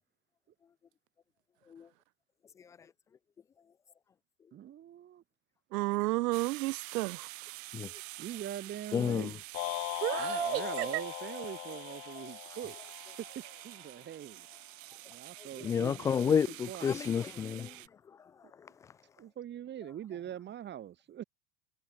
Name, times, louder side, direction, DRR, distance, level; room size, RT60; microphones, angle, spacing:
voice 1, 4.5-5.2 8.2-9.3 10.2-12.8 13.2-14.5 15.1-16.4 16.7-17.0 19.2-21.2, right 11 dB, 20° right, 2.3 m, -43 dB
voice 2, 5.7-7.3 10.0-10.9, right 20 dB, 85° right, 0.9 m, -31 dB
sound 1, 6.3-17.9, right 29 dB, 55° right, 2.8 m, -47 dB
voice 3, 8.9-9.4 15.4-18.7, left 7 dB, 10° left, 0.3 m, -32 dB
sound 2, 9.5-13.9, left 21 dB, 65° left, 2.7 m, -39 dB
supercardioid pair, 165°, 47 cm